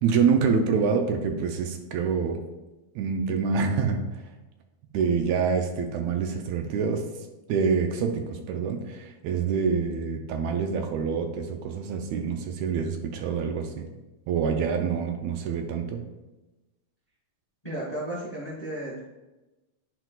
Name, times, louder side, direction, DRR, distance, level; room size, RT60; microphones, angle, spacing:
voice 1, 0.0-2.4 3.0-4.0 4.9-7.0 7.5-13.9 14.3-16.0, right 6 dB, 80° right, 5 dB, 1.8 m, -26 dB
voice 2, 17.6-19.0, right 1 dB, 25° left, -5 dB, 0.9 m, -33 dB
9.7 x 4.7 x 2.3 m, 1.1 s
omnidirectional pair, 3.3 m